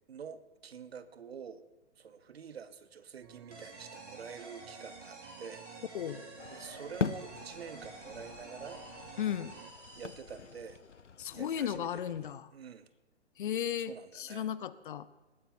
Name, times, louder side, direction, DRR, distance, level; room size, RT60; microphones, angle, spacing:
voice 1, 0.1-1.7 2.0-5.6 6.5-8.8 9.9-10.8 11.3-12.1 12.5-12.9 13.9-14.5, right 7 dB, 60° right, 13 dB, 1.2 m, -47 dB
sound 1, 3.2-9.7, right 11 dB, 20° right, 0.6 m, -53 dB
sound 2, 3.5-10.9, right 1 dB, 90° right, 5.6 m, -51 dB
sound 3, 6.4-12.3, left 6 dB, 90° left, 0.6 m, -42 dB
voice 2, 9.2-9.5 11.2-12.5 13.4-15.1, left 9 dB, 45° left, 16 dB, 0.9 m, -35 dB
19.5 x 10.0 x 5.6 m, 1.2 s
figure-of-eight pair, 125°, 34 cm